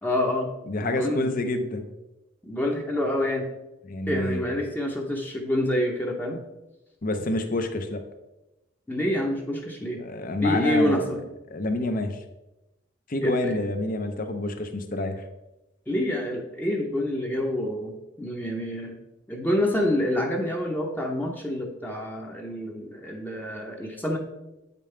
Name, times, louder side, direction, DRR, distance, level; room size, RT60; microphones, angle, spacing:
voice 1, 0.0-0.5 0.8-1.3 2.4-3.4 4.1-6.4 8.9-10.0 10.4-11.2 13.2-13.6 15.9-17.9 18.2-18.9 19.3-24.2, left 1 dB, 10° left, 0 dB, 0.8 m, -27 dB
voice 2, 0.7-1.9 3.8-4.5 7.0-8.0 10.0-11.1 11.5-12.2 13.1-15.2, left 2 dB, 45° left, 7 dB, 0.7 m, -28 dB
8.6 x 5.3 x 3.3 m, 0.97 s
head